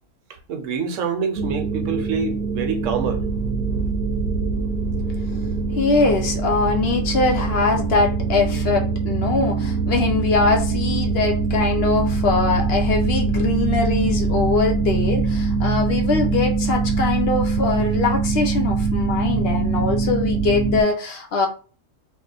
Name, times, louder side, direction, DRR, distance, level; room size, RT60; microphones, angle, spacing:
voice 1, 0.5-3.2, right 5 dB, 80° right, 1.0 m, -26 dB
sound 1, 1.4-20.8, right 4 dB, 55° right, 0.8 m, -23 dB
voice 2, 5.7-21.5, left 4 dB, 60° left, 0.8 m, -22 dB
2.9 x 2.1 x 3.9 m
omnidirectional pair, 1.3 m